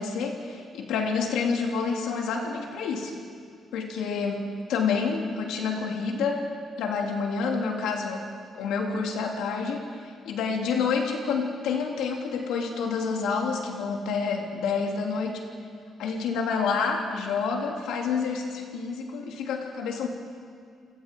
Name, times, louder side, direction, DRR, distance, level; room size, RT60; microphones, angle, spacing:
voice 1, 0.0-3.1 3.7-4.4 4.7-6.5 6.8-8.3 8.5-15.4 16.0-20.1, left 5 dB, 90° left, 1 dB, 2.8 m, -28 dB
28.0 x 18.0 x 5.3 m, 2.2 s
cardioid pair, 90°, 0 cm